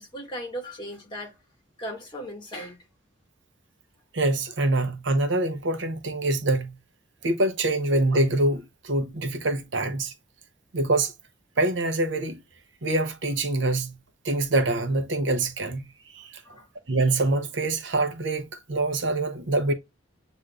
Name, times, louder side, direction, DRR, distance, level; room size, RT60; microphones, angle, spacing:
voice 1, 0.0-1.3 1.8-2.8 16.4-16.7, equal, 25° left, 1.7 m, -37 dB
voice 2, 4.1-6.7 7.2-10.1 10.7-11.1 11.6-12.4 12.8-13.9 14.2-15.8 16.1-16.4 16.9-19.7, right 2 dB, 65° right, 0.8 m, -25 dB
7.7 x 2.7 x 2.4 m
head